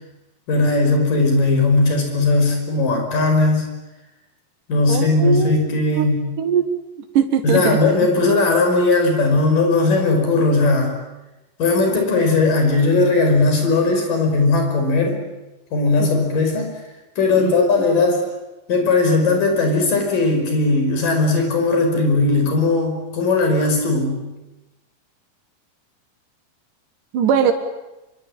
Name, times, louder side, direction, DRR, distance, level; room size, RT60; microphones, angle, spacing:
voice 1, 0.5-3.8 4.7-6.2 7.4-11.0 11.6-15.2 15.7-16.7 17.2-18.2 18.7-24.3, left 3 dB, 75° left, 4 dB, 6.9 m, -18 dB
voice 2, 4.9-5.5 6.0-6.1 6.4-6.7 7.1-7.8 17.4-17.5 27.1-27.5, right 8 dB, 70° right, 6 dB, 3.2 m, -19 dB
25.0 x 24.0 x 9.0 m, 1.0 s
omnidirectional pair, 3.9 m